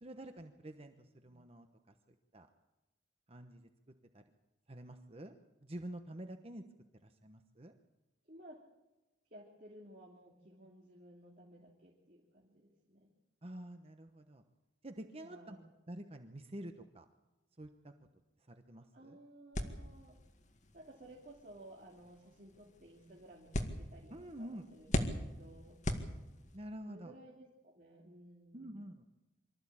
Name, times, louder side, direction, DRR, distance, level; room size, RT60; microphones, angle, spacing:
voice 1, 0.0-2.5 3.3-4.2 4.7-5.3 5.6-6.6 7.0-7.7 13.4-14.4 14.8-15.6 15.9-17.0 17.6-17.9 18.5-19.2 24.1-24.7 26.5-27.1 28.5-29.1, right 1 dB, 35° right, 6 dB, 1.1 m, -48 dB
voice 2, 8.2-8.6 9.3-13.1 15.2-15.7 18.9-20.2 20.7-25.8 26.9-28.7, right 1 dB, 50° right, -1 dB, 2.9 m, -56 dB
sound 1, 19.5-26.7, left 1 dB, 45° left, 2.1 m, -41 dB
24.5 x 14.0 x 8.7 m, 1.1 s
head